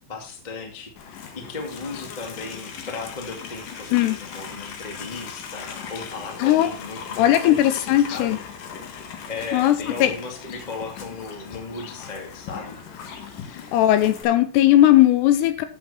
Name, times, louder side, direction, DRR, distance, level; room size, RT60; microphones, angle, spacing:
voice 1, 0.1-8.4 9.2-12.7, left 4 dB, 40° left, 2 dB, 0.6 m, -36 dB
Livestock farm animals working animals, 1.0-14.2, left 6 dB, 60° left, 2.7 m, -39 dB
voice 2, 6.4-6.7 7.2-8.4 9.5-9.8 10.0-10.1 13.7-15.7, left 13 dB, 80° left, 11 dB, 2.8 m, -17 dB
12.5 x 7.8 x 4.3 m, 0.38 s
omnidirectional pair, 5.1 m